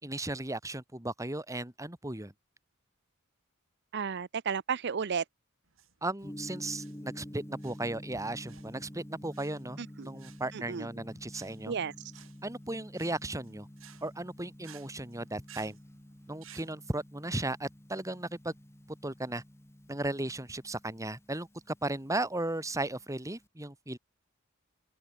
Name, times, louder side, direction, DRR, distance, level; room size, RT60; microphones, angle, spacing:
voice 1, 0.0-2.3 6.0-9.8 10.0-11.7 12.4-13.7 14.0-15.8 16.3-18.5 19.0-19.4 19.9-24.0, right 2 dB, 15° right, 2.2 m, -36 dB
voice 2, 3.9-5.2 9.8-10.1 10.5-10.9 11.7-12.1, right 6 dB, 55° right, 0.6 m, -33 dB
sound 1, 5.6-16.7, right 9 dB, 75° right, 3.4 m, -57 dB
Gong, 6.2-23.5, equal, 15° left, 2.1 m, -49 dB
open air
head